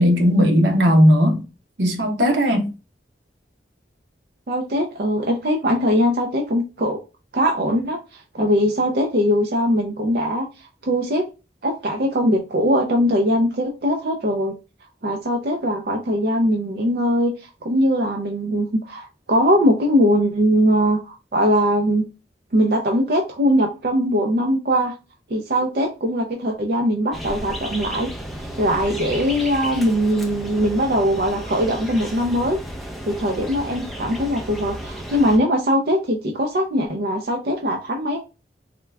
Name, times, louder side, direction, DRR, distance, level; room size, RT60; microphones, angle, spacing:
voice 1, 0.0-1.4 1.8-2.7, equal, 90° right, 0.9 m, -16 dB
voice 2, 4.5-7.0 7.3-11.2 11.6-14.6 15.0-22.0 22.5-24.9 25.3-28.1 28.6-32.6 33.1-38.2, equal, 60° right, 0.5 m, -21 dB
sound 1, 27.1-35.4, equal, ahead, 0.5 m, -33 dB
3.6 x 2.3 x 3.2 m
head